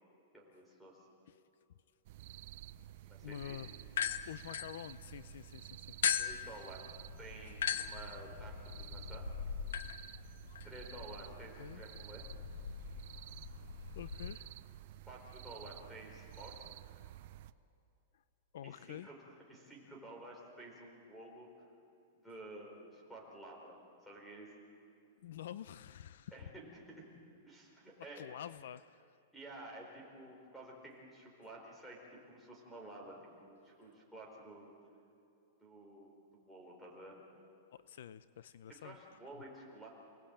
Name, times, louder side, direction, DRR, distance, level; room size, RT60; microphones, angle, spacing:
voice 1, 0.3-0.9 3.1-3.6 6.2-9.2 10.6-12.2 15.1-16.7 18.6-19.2 19.5-21.7 22.2-24.5 26.3-27.1 27.4-28.3 29.3-34.7 35.6-37.2 38.8-39.9, right 1 dB, ahead, -2 dB, 4.4 m, -52 dB
sound 1, 2.0-17.5, right 14 dB, 45° right, 0.6 m, -52 dB
voice 2, 3.2-3.8 4.3-6.0 7.4-7.6 11.6-11.8 14.0-14.5 18.1-18.2 18.5-19.1 25.2-26.5 28.1-29.2 37.7-39.0, left 10 dB, 65° left, 15 dB, 0.6 m, -48 dB
sound 2, 3.9-5.4 6.0-14.3, left 8 dB, 85° left, 1.1 m, -40 dB
29.0 x 18.5 x 8.8 m, 2.6 s
supercardioid pair, 175°, 0 cm